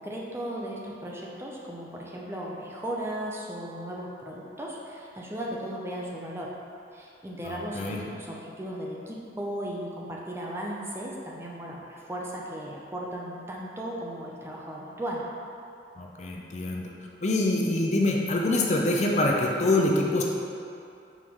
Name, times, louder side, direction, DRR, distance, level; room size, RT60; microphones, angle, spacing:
voice 1, 0.0-6.5 6.9-15.3, right 1 dB, 15° right, -3 dB, 0.6 m, -36 dB
voice 2, 7.4-8.0 16.0-16.9 17.2-20.2, left 2 dB, 40° left, -1 dB, 0.6 m, -25 dB
5.6 x 4.8 x 3.6 m, 2.6 s
head